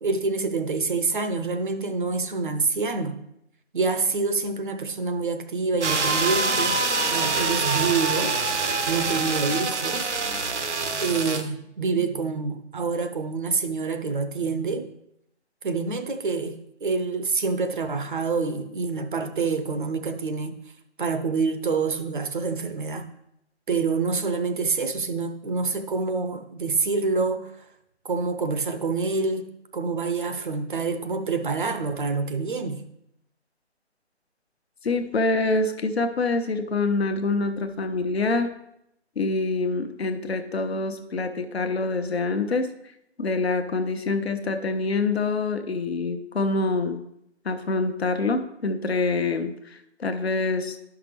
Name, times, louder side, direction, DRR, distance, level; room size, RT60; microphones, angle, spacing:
voice 1, 0.0-3.2 3.7-6.8 7.1-8.4 8.9-10.1 11.0-14.9 15.6-16.5 16.8-20.5 21.0-23.1 23.7-27.7 28.0-32.9, right 4 dB, 45° right, 8 dB, 0.6 m, -27 dB
sound 1, 5.8-11.4, right 3 dB, 80° right, 0.9 m, -25 dB
voice 2, 34.8-38.5 39.2-42.7 43.2-47.0 47.4-50.8, left 3 dB, 60° left, 6 dB, 1.0 m, -26 dB
11.0 x 5.9 x 3.2 m, 0.79 s
figure-of-eight pair, 155°, 34 cm